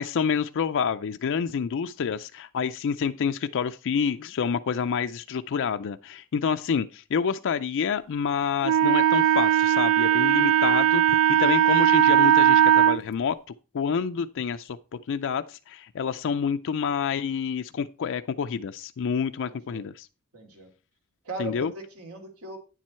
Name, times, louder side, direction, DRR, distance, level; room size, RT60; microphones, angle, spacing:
voice 1, 0.0-13.4 13.7-14.8 15.1-20.1 21.4-21.7, left 6 dB, 60° left, 0.4 m, -28 dB
Wind instrument woodwind instrument, 8.6-13.0, right 10 dB, 65° right, 0.4 m, -19 dB
voice 2, 19.4-19.9 20.3-20.7 21.2-22.6, right 2 dB, 80° right, 2.9 m, -39 dB
9.8 x 7.4 x 4.3 m
head